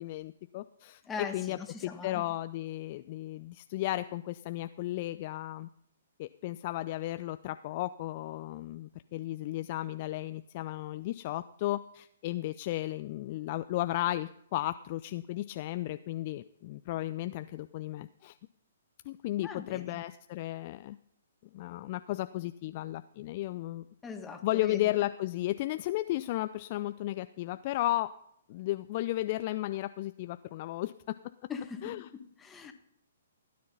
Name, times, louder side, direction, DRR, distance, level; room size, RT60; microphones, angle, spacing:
voice 1, 0.0-5.7 6.2-18.4 19.1-21.0 21.5-23.8 24.4-28.1 28.5-31.1 31.8-32.1, left 16 dB, 40° left, 12 dB, 0.4 m, -34 dB
voice 2, 1.1-2.3 19.4-20.0 24.0-24.9 31.5-32.7, left 5 dB, 15° left, 6 dB, 1.6 m, -41 dB
16.0 x 9.7 x 5.5 m, 0.74 s
figure-of-eight pair, 125°, 0 cm